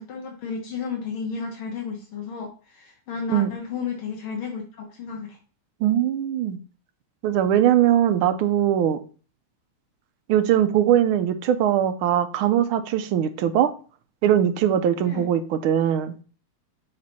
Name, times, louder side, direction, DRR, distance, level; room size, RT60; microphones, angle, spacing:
voice 1, 0.0-5.4 15.0-15.3, left 5 dB, 75° left, 1.8 m, -33 dB
voice 2, 5.8-6.6 7.2-9.0 10.3-13.7 14.2-16.1, right 10 dB, 75° right, 1.5 m, -21 dB
6.8 x 3.9 x 4.1 m
omnidirectional pair, 2.4 m